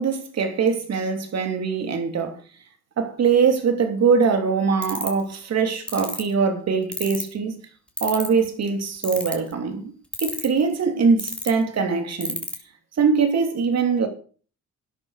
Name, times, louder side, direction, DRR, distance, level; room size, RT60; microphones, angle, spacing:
voice 1, 0.0-2.4 3.0-7.6 8.0-9.9 10.2-12.4 13.0-14.1, right 5 dB, 60° right, 3.2 m, -22 dB
sound 1, 4.8-5.2 5.9-6.2 6.9-7.3 8.0-8.4 9.0-9.5 10.1-10.6 11.2-11.5 12.2-12.5, left 1 dB, 5° left, 3.5 m, -28 dB
12.5 x 10.5 x 5.0 m
cardioid pair, 90°, 30 cm